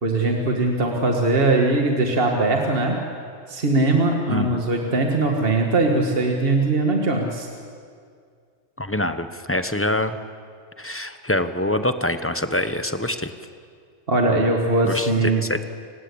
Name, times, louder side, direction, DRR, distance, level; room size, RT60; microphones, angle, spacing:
voice 1, 0.0-3.0 3.5-7.5 14.1-15.4, right 2 dB, 50° right, 1 dB, 2.2 m, -20 dB
voice 2, 4.3-4.6 8.8-10.2 10.8-13.3 14.8-15.7, left 1 dB, 10° left, 10 dB, 0.9 m, -25 dB
29.0 x 16.5 x 8.7 m, 2.2 s
omnidirectional pair, 1.2 m